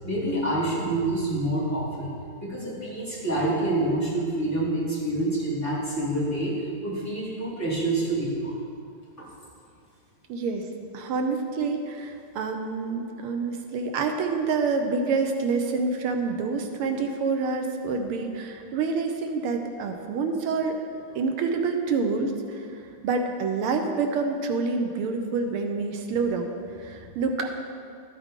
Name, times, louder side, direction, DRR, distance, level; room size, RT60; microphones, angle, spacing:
voice 1, 0.0-8.5 9.2-9.3, right 1 dB, 5° left, -9 dB, 2.7 m, -27 dB
voice 2, 10.3-10.6 10.9-20.8 21.2-22.7 23.0-26.5 26.8-27.5, right 4 dB, 85° right, 4 dB, 1.7 m, -27 dB
13.5 x 8.7 x 3.7 m, 2.3 s
omnidirectional pair, 2.4 m